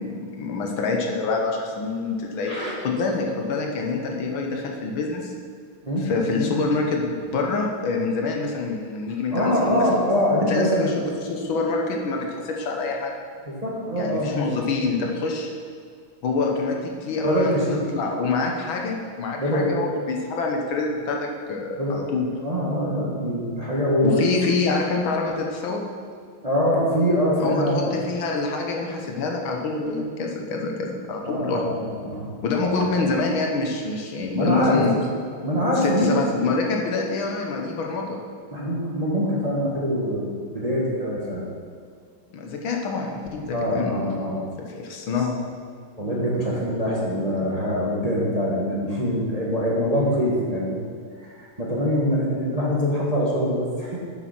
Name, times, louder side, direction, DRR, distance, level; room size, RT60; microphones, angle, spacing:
voice 1, 0.0-5.3 6.0-9.9 10.5-13.1 13.9-15.5 16.2-22.3 24.0-25.8 27.4-31.7 32.4-34.9 35.8-38.2 42.3-44.1 44.6-45.5 47.4-47.5, left 3 dB, 75° left, 1 dB, 1.8 m, -26 dB
voice 2, 9.3-11.0 13.4-14.5 17.2-17.8 19.4-19.7 21.8-22.0 22.4-24.6 26.4-27.9 31.2-32.3 32.6-32.8 34.3-35.0 35.4-36.2 38.5-41.4 43.5-44.4 46.0-50.8 51.2-54.0, equal, 20° right, -5 dB, 1.4 m, -24 dB
7.9 x 6.9 x 5.9 m, 2.1 s
omnidirectional pair, 2.2 m